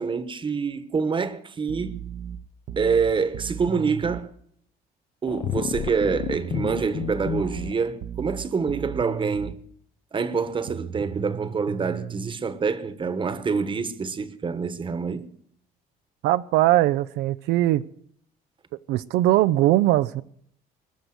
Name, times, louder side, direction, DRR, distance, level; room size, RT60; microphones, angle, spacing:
voice 1, 0.0-2.0 2.8-4.3 5.2-9.6 10.1-15.3, right 5 dB, 30° right, 1.2 m, -26 dB
sound 1, 1.7-4.3 6.0-9.6 10.7-12.3, right 9 dB, 65° right, 0.9 m, -36 dB
sound 2, 5.3-7.7, left 9 dB, 50° left, 1.0 m, -31 dB
voice 2, 16.2-17.8 18.9-20.2, right 15 dB, 85° right, 0.5 m, -20 dB
20.5 x 6.8 x 7.9 m
cardioid pair, 110°, 17 cm